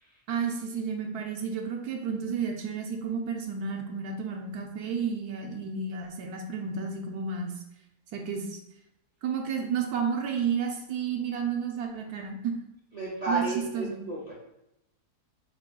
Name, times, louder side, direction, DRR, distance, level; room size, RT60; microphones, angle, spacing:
voice 1, 0.3-7.6 8.1-8.6 9.2-12.6 13.3-14.0, right 6 dB, 80° right, 2 dB, 1.1 m, -31 dB
voice 2, 12.9-14.3, right 3 dB, 65° right, -6 dB, 0.4 m, -32 dB
4.1 x 3.7 x 2.2 m, 0.86 s
omnidirectional pair, 1.6 m